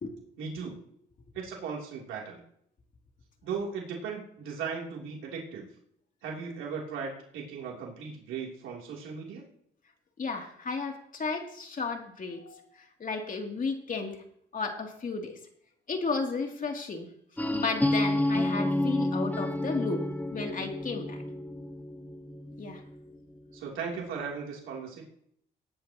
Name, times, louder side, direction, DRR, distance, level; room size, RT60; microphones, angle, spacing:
voice 1, 0.4-0.8 1.3-2.4 3.4-5.7 6.2-9.4 23.5-25.0, right 5 dB, 85° right, -1 dB, 3.1 m, -37 dB
voice 2, 10.2-14.2 14.5-15.3 15.9-17.1 17.5-20.0 20.3-21.2 22.6-22.8, left 4 dB, 40° left, 2 dB, 2.8 m, -33 dB
sound 1, 17.4-23.1, left 1 dB, 10° left, 1.2 m, -30 dB
18.5 x 10.0 x 3.0 m, 0.68 s
cardioid pair, 90°, 20 cm